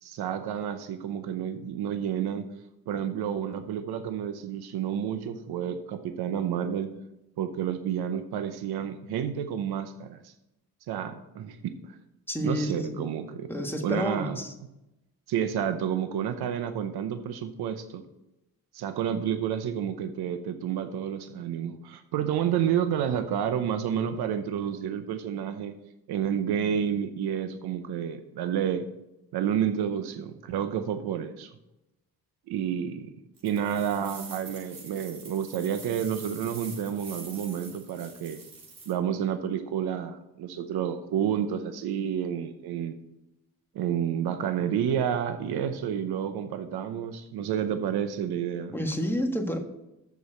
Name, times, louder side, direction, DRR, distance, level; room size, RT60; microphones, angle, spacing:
voice 1, 0.0-2.5 2.9-6.9 7.4-10.3 10.9-12.0 12.4-13.5 13.8-14.4 15.3-18.0 18.7-25.7 26.1-28.8 29.3-31.5 32.5-33.1 33.4-38.4 38.9-43.0 43.7-48.8, right 9 dB, 75° right, 9 dB, 0.8 m, -30 dB
voice 2, 12.3-13.1 13.5-14.5 48.7-49.6, equal, 5° left, 3 dB, 1.6 m, -30 dB
sound 1, 33.4-38.9, right 4 dB, 60° right, 2.7 m, -45 dB
7.0 x 6.3 x 7.8 m, 0.91 s
cardioid pair, 75°, 38 cm